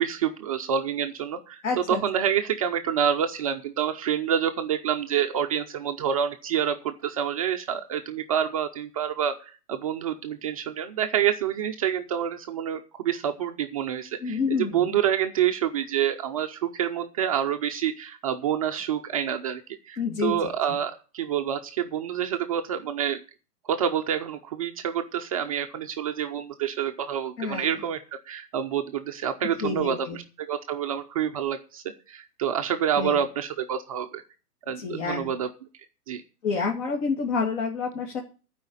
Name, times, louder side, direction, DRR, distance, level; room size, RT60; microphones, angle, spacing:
voice 1, 0.0-1.6 1.9-23.2 23.7-28.0 28.3-34.2 34.7-35.5 36.1-36.2, right 9 dB, 25° right, 5 dB, 0.4 m, -27 dB
voice 2, 1.6-2.0 14.2-15.0 20.0-20.4 27.4-27.7 29.6-30.2 33.0-33.2 34.8-35.3 36.4-38.2, left 5 dB, 50° left, 0 dB, 2.5 m, -28 dB
11.5 x 4.9 x 8.4 m, 0.37 s
hypercardioid pair, 130°, 48 cm